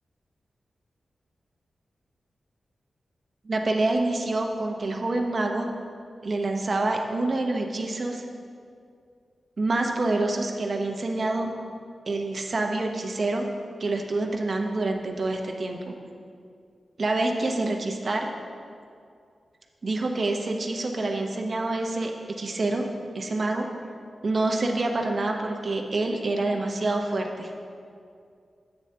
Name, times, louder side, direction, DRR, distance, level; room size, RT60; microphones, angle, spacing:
voice 1, 3.4-5.7 6.2-8.3 9.6-11.5 12.1-13.5 13.8-15.9 17.0-18.3 19.8-22.8 23.1-23.7 24.2-27.5, right 2 dB, 55° right, 2 dB, 0.9 m, -27 dB
10.0 x 8.1 x 2.8 m, 2.3 s
cardioid pair, 60°, 0 cm